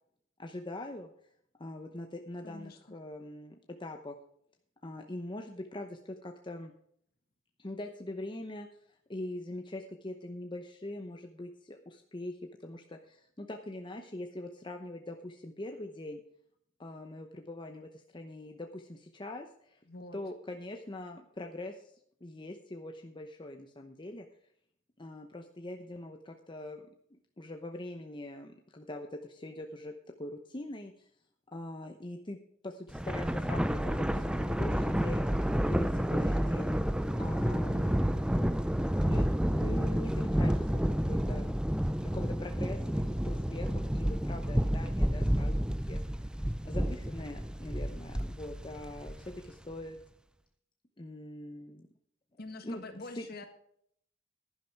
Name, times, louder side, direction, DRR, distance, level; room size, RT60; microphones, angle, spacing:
voice 1, 0.4-1.1 1.6-4.2 4.8-6.7 7.6-8.7 9.1-16.2 16.8-19.8 20.1-21.9 22.2-24.3 25.0-31.1 31.5-32.4 32.6-36.8 37.2-38.2 39.0-41.5 42.0-46.0 46.6-50.0 51.0-51.9 52.6-52.8 53.2-53.5, left 1 dB, 25° left, 4 dB, 0.9 m, -42 dB
voice 2, 2.4-3.0 19.9-20.2 52.4-53.5, left 2 dB, 50° left, 7 dB, 1.7 m, -45 dB
Thunder, 32.9-49.5, equal, 5° right, 0.5 m, -30 dB
11.0 x 11.0 x 4.6 m, 0.66 s
head